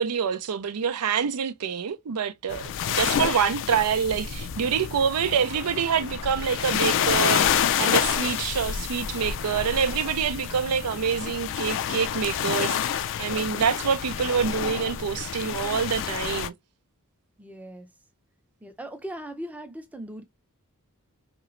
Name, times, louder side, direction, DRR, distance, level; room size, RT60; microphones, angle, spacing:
voice 1, 0.0-16.5, right 7 dB, 85° right, 0.5 m, -26 dB
sound 1, 2.5-16.5, left 9 dB, 55° left, 0.3 m, -28 dB
voice 2, 17.4-17.9 18.6-20.2, right 1 dB, 5° right, 0.5 m, -39 dB
3.1 x 3.0 x 2.4 m
head